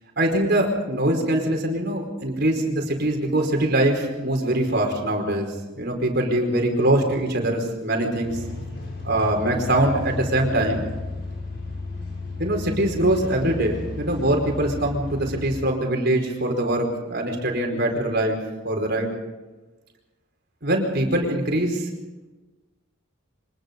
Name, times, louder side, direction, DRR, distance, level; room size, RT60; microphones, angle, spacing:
voice 1, 0.2-8.4 9.0-10.9 12.4-18.4 18.6-19.1 20.6-21.9, right 1 dB, 50° right, 2 dB, 4.8 m, -23 dB
sound 1, 8.2-15.6, left 3 dB, 55° left, 6.9 m, -34 dB
25.0 x 20.5 x 5.3 m, 1.2 s
head